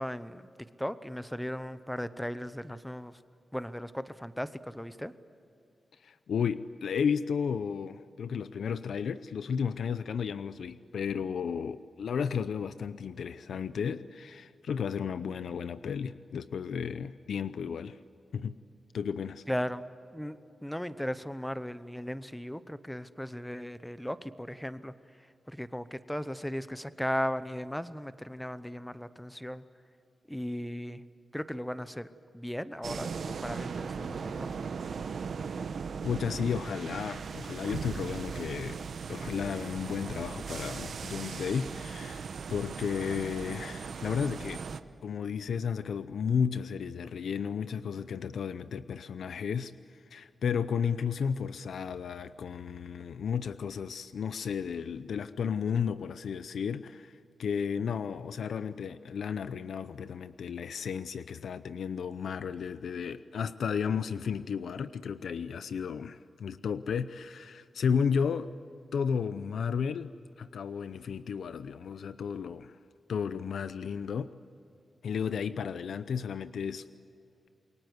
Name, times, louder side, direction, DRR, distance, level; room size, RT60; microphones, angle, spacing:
voice 1, 0.0-3.2 3.5-5.1 19.5-29.6 30.3-31.0 31.3-32.1 32.3-34.5, equal, 5° left, 13 dB, 0.8 m, -37 dB
voice 2, 6.0-18.0 18.3-18.6 18.9-19.4 36.0-38.8 39.1-44.6 45.0-68.5 68.9-72.8 73.1-74.3 75.0-76.9, left 7 dB, 90° left, 13 dB, 0.6 m, -33 dB
sound 1, 32.8-44.8, right 5 dB, 60° right, 1.0 m, -38 dB
28.5 x 23.0 x 8.1 m, 2.6 s
wide cardioid pair, 170°, 0 cm